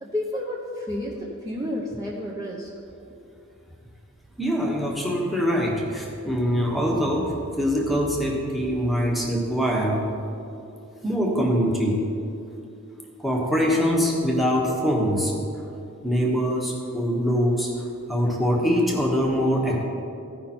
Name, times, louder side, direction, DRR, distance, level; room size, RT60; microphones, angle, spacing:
voice 1, 0.0-2.7, left 1 dB, 15° right, -5 dB, 0.8 m, -31 dB
voice 2, 4.4-10.0 11.0-12.0 13.2-15.3 16.0-17.7 18.1-19.8, equal, ahead, -2 dB, 1.3 m, -23 dB
15.5 x 5.3 x 4.4 m, 2.6 s
head